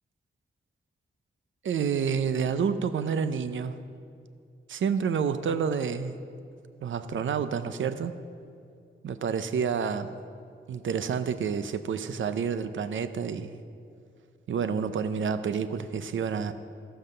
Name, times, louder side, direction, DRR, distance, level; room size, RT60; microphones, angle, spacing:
voice 1, 1.6-3.8 4.7-6.2 6.8-8.1 9.0-10.2 10.7-13.6 14.5-16.5, right 6 dB, 75° right, 11 dB, 0.6 m, -29 dB
15.5 x 5.6 x 6.6 m, 2.4 s
wide cardioid pair, 180°, 20 cm